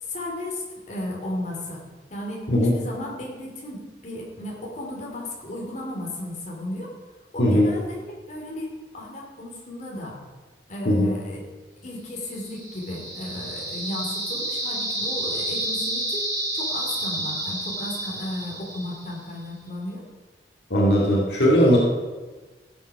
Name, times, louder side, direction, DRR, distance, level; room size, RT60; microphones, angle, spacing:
voice 1, 0.0-1.8 2.1-6.9 7.3-8.0 8.3-8.7 8.9-10.2 10.7-11.4 11.8-16.2 16.5-20.0, left 1 dB, 40° left, -2 dB, 2.7 m, -34 dB
voice 2, 7.4-7.7 10.8-11.1 20.7-21.8, equal, 65° left, -3 dB, 2.2 m, -18 dB
sound 1, 12.3-19.2, right 1 dB, 20° right, 3.3 m, -30 dB
15.5 x 7.3 x 4.8 m, 1.3 s
head